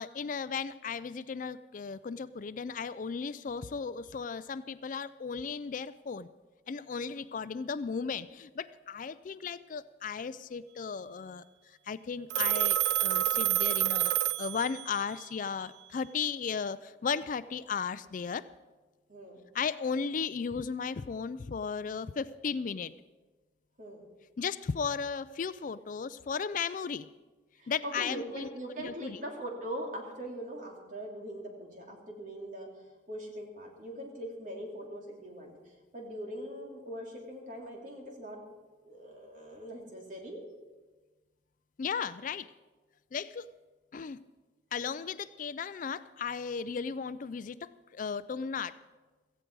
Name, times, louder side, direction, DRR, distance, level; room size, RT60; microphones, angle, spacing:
voice 1, 0.0-6.3 6.7-18.5 19.5-22.9 24.4-27.1 27.7-28.5 28.8-29.2 41.8-42.5 43.1-43.5 43.9-44.2 44.7-48.8, left 6 dB, 45° left, 14 dB, 0.4 m, -35 dB
Telephone, 12.3-15.0, right 13 dB, 65° right, 0.4 m, -28 dB
voice 2, 19.1-19.4 23.8-24.1 27.6-32.7 33.1-35.6 35.9-38.4 38.8-40.4, right 1 dB, 45° right, 0 dB, 3.0 m, -41 dB
17.0 x 15.0 x 4.6 m, 1.3 s
head